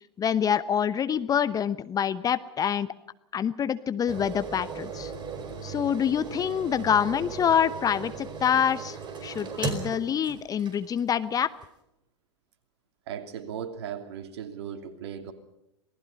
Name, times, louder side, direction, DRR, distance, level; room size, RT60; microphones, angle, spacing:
voice 1, 0.2-2.9 3.3-5.1 5.6-11.5, left 8 dB, 25° left, 15 dB, 0.9 m, -26 dB
sound 1, 4.1-11.1 11.6-11.7, right 5 dB, 30° right, 4.7 m, -37 dB
voice 2, 13.1-15.3, right 8 dB, 60° right, 8 dB, 2.8 m, -37 dB
27.0 x 19.0 x 5.5 m, 0.83 s
hypercardioid pair, 95°, 15 cm